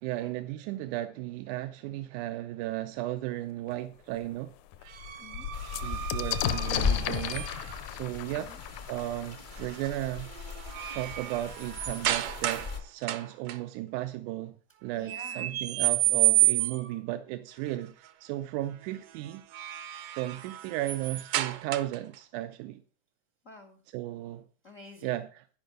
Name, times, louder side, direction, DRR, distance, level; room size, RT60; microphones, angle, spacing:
voice 1, 0.0-4.5 5.8-10.3 10.9-14.6 14.8-19.4 20.1-22.8 23.9-24.4 25.0-25.4, right 15 dB, 90° right, 2.1 m, -35 dB
sound 1, 3.7-3.8 4.2-4.3 4.6-10.2 11.1-11.2 11.5-12.1, left 11 dB, 90° left, 2.1 m, -35 dB
sound 2, 4.9-7.8 9.6-9.9 10.3-12.7 13.0-13.6 15.1-17.0 19.3-22.1, right 16 dB, 75° right, 1.4 m, -30 dB
voice 2, 5.2-5.5 8.4-8.6 14.9-15.6 23.4-23.8 24.6-25.2, left 2 dB, 65° left, 0.7 m, -50 dB
sound 3, 5.5-12.8, left 5 dB, 35° left, 0.8 m, -37 dB
12.0 x 5.4 x 6.3 m
omnidirectional pair, 3.5 m